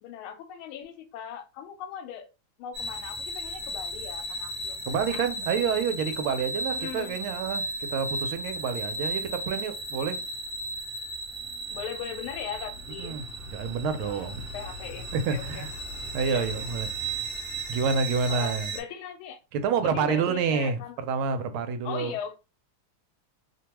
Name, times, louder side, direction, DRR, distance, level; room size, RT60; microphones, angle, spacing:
voice 1, 0.0-2.3 2.6-4.8 5.1-5.3 6.7-7.2 11.7-13.3 14.0-14.2 14.5-15.7 16.3-16.6 18.3-19.4 19.8-21.0 21.8-22.3, left 8 dB, 80° left, 1.4 m, -39 dB
sound 1, 2.7-18.8, right 1 dB, 55° right, 1.4 m, -35 dB
voice 2, 4.9-10.2 13.0-14.4 15.1-15.7 16.1-16.9 17.7-18.7 19.5-20.8 21.1-22.1, right 6 dB, 80° right, 1.4 m, -28 dB
3.3 x 2.2 x 2.9 m
omnidirectional pair, 2.3 m